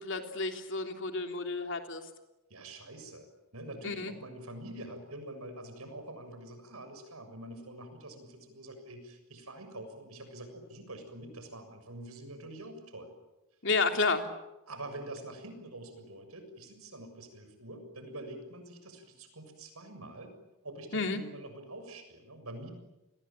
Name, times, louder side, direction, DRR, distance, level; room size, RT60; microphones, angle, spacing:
voice 1, 0.0-2.0 3.8-4.1 13.6-14.3 20.9-21.2, left 3 dB, 55° left, 5 dB, 3.4 m, -31 dB
voice 2, 2.5-13.1 14.7-20.3 20.6-22.7, right 1 dB, 85° right, 8 dB, 7.0 m, -46 dB
29.5 x 21.5 x 9.2 m, 0.98 s
head